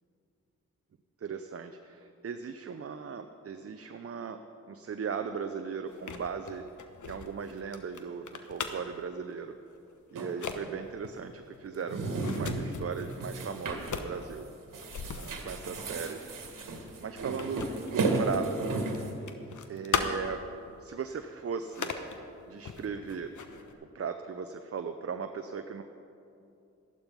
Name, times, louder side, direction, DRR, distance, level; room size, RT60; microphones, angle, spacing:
voice 1, 1.2-4.4 4.7-6.6 7.0-9.6 10.1-14.5 15.1-16.2 17.0-17.6 17.9-18.7 19.7-20.4 20.8-21.9 22.5-23.3 23.9-25.8, right 6 dB, 40° right, 7 dB, 0.7 m, -37 dB
sound 1, 5.9-9.0 9.7-9.9 10.2-10.6 11.0-13.2 13.7-18.6 18.8-20.5 20.9-21.0 21.6-22.2 22.6-23.7, left 6 dB, 55° left, 1.1 m, -38 dB
sound 2, 10.2-10.3 11.7-12.7 13.2-14.0 14.3-14.5 14.7-19.1, right 3 dB, 60° right, 1.7 m, -33 dB
12.5 x 11.5 x 5.3 m, 2.7 s
supercardioid pair, 45°, 36 cm